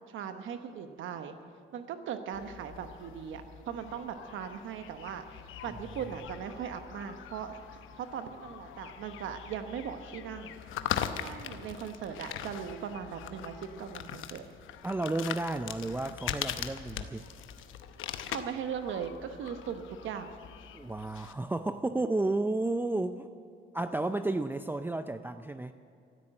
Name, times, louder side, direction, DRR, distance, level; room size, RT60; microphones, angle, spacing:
voice 1, 0.1-1.3 1.7-5.2 5.6-7.5 8.0-10.5 11.1-14.4 18.3-20.4, right 7 dB, 80° right, 8 dB, 1.0 m, -39 dB
sound 1, 2.3-21.3, left 10 dB, 85° left, 0.9 m, -41 dB
voice 2, 14.8-17.2 20.7-23.3 23.7-25.7, right 2 dB, 10° right, 10 dB, 0.5 m, -32 dB
14.0 x 13.0 x 7.6 m, 2.4 s
cardioid pair, 90°, 20 cm